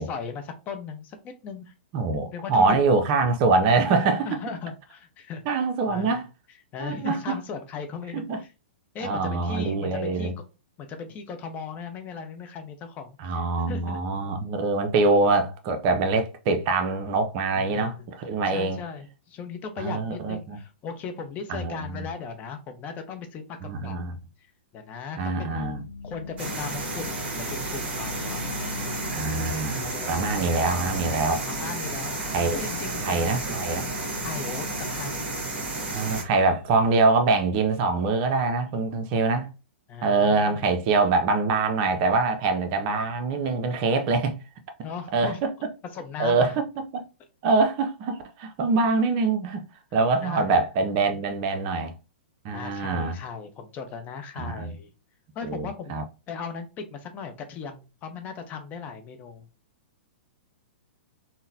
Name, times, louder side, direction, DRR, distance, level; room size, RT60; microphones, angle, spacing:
voice 1, 0.0-1.7 2.3-2.8 4.2-5.4 5.9-6.2 6.7-8.5 8.9-10.5 10.8-14.0 17.6-18.1 18.5-24.0 24.4-25.6 26.0-28.4 29.7-30.3 31.5-32.2 32.5-33.2 34.2-35.3 39.9-40.6 44.8-45.4 45.9-46.6 49.9-50.6 52.5-54.9 55.3-56.0 56.3-59.5, left 5 dB, 30° left, 0.6 m, -37 dB
voice 2, 1.9-4.3 5.5-6.2 6.8-7.4 8.1-8.4 9.0-10.3 13.2-18.8 19.8-20.6 21.5-22.0 23.6-24.1 25.2-25.8 29.1-31.5 32.3-32.6 33.0-33.9 35.9-39.5 40.0-44.4 45.1-45.5 46.2-47.1 47.4-49.6 49.9-51.9 52.4-53.2 54.4-54.7 55.4-56.0, right 3 dB, 40° right, 0.6 m, -24 dB
sound 1, 25.4-36.9, left 4 dB, 85° left, 0.3 m, -41 dB
sound 2, 26.4-36.2, right 2 dB, 25° right, 1.3 m, -32 dB
3.8 x 2.1 x 2.6 m
figure-of-eight pair, 110°, 6 cm